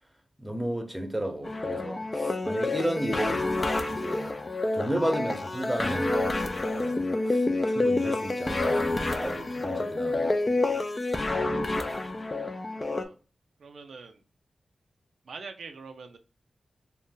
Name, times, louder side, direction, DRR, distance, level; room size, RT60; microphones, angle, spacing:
voice 1, 0.4-3.5 3.9-4.4 4.7-6.2 6.7-7.0 7.3-10.6, equal, 10° right, 0.8 m, -33 dB
sound 1, 1.4-13.0, left 2 dB, 40° left, 0.4 m, -28 dB
voice 2, 12.7-13.1 13.6-14.2 15.2-16.2, right 4 dB, 80° right, 0.3 m, -44 dB
2.6 x 2.1 x 3.6 m
cardioid pair, 45°, 0 cm